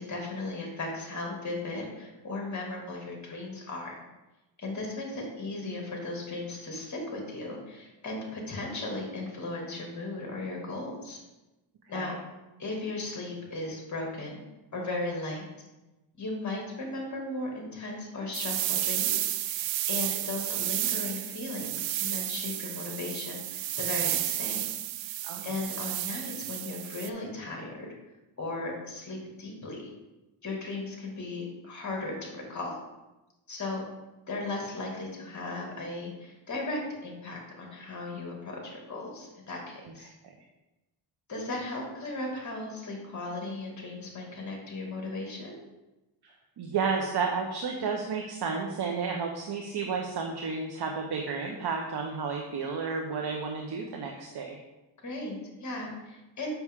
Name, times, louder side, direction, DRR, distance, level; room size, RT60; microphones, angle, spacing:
voice 1, 0.0-4.0 4.6-11.2 11.9-12.1 12.6-14.4 14.7-15.5 16.2-24.7 25.0-25.1 25.4-27.9 28.4-29.9 30.4-32.8 33.5-33.8 34.3-40.1 41.3-45.6 55.0-56.5, left 2 dB, 40° left, 0 dB, 2.3 m, -36 dB
sound 1, 18.3-27.1, right 13 dB, 80° right, 0.6 m, -32 dB
voice 2, 46.6-54.6, right 5 dB, 60° right, 2 dB, 1.0 m, -32 dB
8.1 x 5.9 x 3.6 m, 1.0 s
cardioid pair, 85°, 45 cm